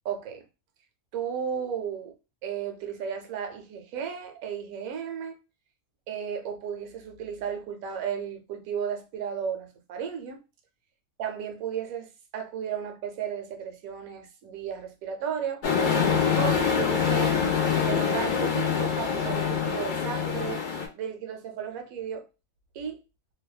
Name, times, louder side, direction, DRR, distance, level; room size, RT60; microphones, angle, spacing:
voice 1, 0.0-0.5 1.1-2.1 2.4-5.4 6.1-10.4 11.2-15.6 16.4-17.5 17.8-20.6 20.9-22.3 22.7-23.0, right 8 dB, 75° right, 1.0 m, -34 dB
sound 1, 15.6-20.9, left 6 dB, 85° left, 0.4 m, -25 dB
2.7 x 2.2 x 2.3 m
omnidirectional pair, 1.6 m